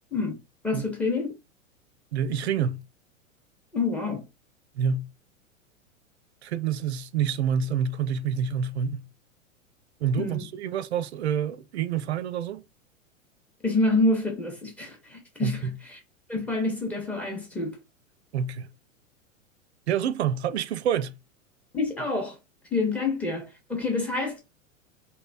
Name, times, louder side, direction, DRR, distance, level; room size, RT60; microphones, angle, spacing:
voice 1, 0.6-1.3 3.7-4.3 10.2-10.4 13.6-16.0 16.3-17.8 21.7-22.4 22.7-24.5, left 3 dB, 5° left, 0.6 m, -27 dB
voice 2, 2.1-2.8 4.8-5.1 6.4-9.0 10.0-12.6 15.4-15.8 18.3-18.7 19.9-21.1, right 7 dB, 55° right, 0.5 m, -27 dB
3.1 x 3.0 x 2.4 m
figure-of-eight pair, 100°, 40 cm